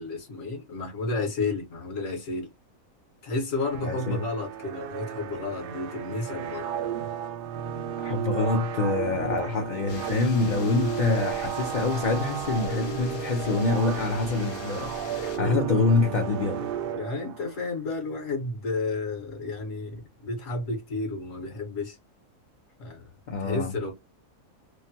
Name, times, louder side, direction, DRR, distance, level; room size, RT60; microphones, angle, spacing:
voice 1, 0.0-2.5 3.2-6.7 16.9-22.0 22.8-23.1 23.4-23.9, left 3 dB, 70° left, 1.4 m, -32 dB
sound 1, 3.6-17.7, right 9 dB, 70° right, 0.5 m, -33 dB
voice 2, 3.8-4.3 8.0-16.7 23.3-23.7, left 3 dB, 55° left, 0.5 m, -26 dB
sound 2, 9.9-15.4, left 4 dB, 90° left, 1.2 m, -43 dB
3.1 x 2.2 x 2.7 m
omnidirectional pair, 1.4 m